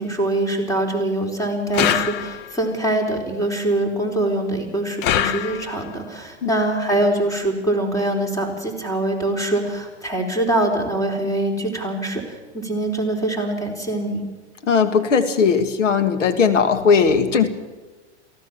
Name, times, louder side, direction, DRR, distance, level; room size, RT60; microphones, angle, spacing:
voice 1, 0.0-14.2, right 1 dB, 10° left, 3 dB, 4.4 m, -23 dB
sound 1, 1.7-2.7 5.0-6.0, left 11 dB, 30° left, 0.7 m, -23 dB
voice 2, 14.6-17.5, left 6 dB, 85° left, 9 dB, 2.1 m, -18 dB
23.5 x 16.5 x 7.3 m, 1.2 s
hypercardioid pair, 130°, 36 cm